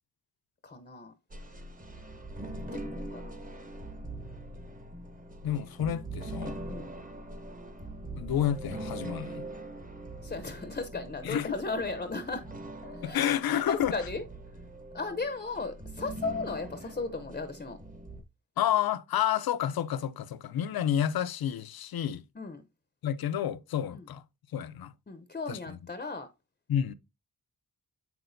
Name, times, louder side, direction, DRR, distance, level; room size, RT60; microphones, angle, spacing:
voice 1, 0.6-1.1 2.7-3.3 6.7-6.9 10.2-12.5 12.8-13.3 13.6-14.2 14.9-17.8 22.4-22.6 23.9-24.0 25.1-26.3, left 3 dB, 25° left, 0.7 m, -36 dB
sound 1, 1.3-18.2, right 1 dB, 20° right, 1.0 m, -42 dB
voice 2, 5.4-6.6 8.2-9.5 11.2-11.5 13.0-13.9 18.6-22.2 23.0-24.2 24.5-24.9 25.5-25.8 26.7-26.9, left 10 dB, 70° left, 0.6 m, -30 dB
7.3 x 6.1 x 2.6 m
cardioid pair, 95°, 38 cm